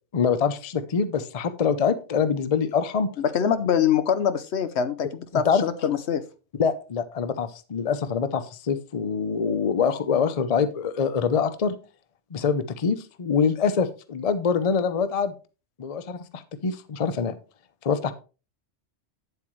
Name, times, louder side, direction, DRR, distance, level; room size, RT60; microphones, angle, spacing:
voice 1, 0.1-3.1 5.3-5.6 6.5-11.7 12.3-15.3 15.8-17.3 17.8-18.1, left 6 dB, 40° left, 11 dB, 0.6 m, -25 dB
voice 2, 3.2-6.2, left 8 dB, 65° left, 12 dB, 1.0 m, -24 dB
9.1 x 7.8 x 3.1 m, 0.33 s
omnidirectional pair, 1.3 m